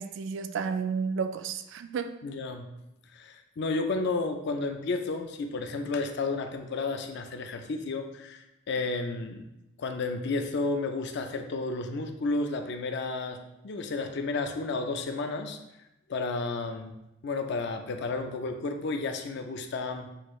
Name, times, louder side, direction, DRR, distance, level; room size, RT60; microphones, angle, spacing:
voice 1, 0.0-2.2, right 5 dB, 60° right, 0.3 m, -32 dB
voice 2, 2.2-2.7 3.1-9.4 9.8-15.6 16.1-16.9 17.2-20.1, left 3 dB, 55° left, 0.4 m, -32 dB
6.5 x 2.4 x 3.0 m
head